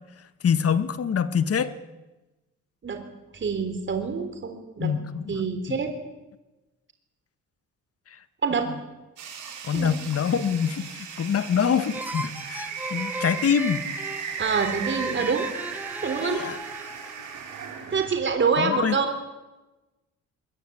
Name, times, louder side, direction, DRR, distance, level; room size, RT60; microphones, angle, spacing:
voice 1, 0.4-1.7 4.8-5.4 5.7-5.8 9.6-13.9 16.2-16.6 18.6-19.0, left 7 dB, 50° left, 12 dB, 1.7 m, -25 dB
voice 2, 3.3-4.9 5.3-5.9 8.4-8.8 9.7-9.9 14.4-15.5 16.0-16.5 17.9-19.1, right 5 dB, 40° right, 7 dB, 3.6 m, -26 dB
sound 1, 9.2-18.1, right 6 dB, 80° right, 6.1 m, -36 dB
sound 2, 11.9-17.4, right 1 dB, 5° right, 1.8 m, -37 dB
22.0 x 19.5 x 8.6 m, 1.1 s
cardioid pair, 90°, 30 cm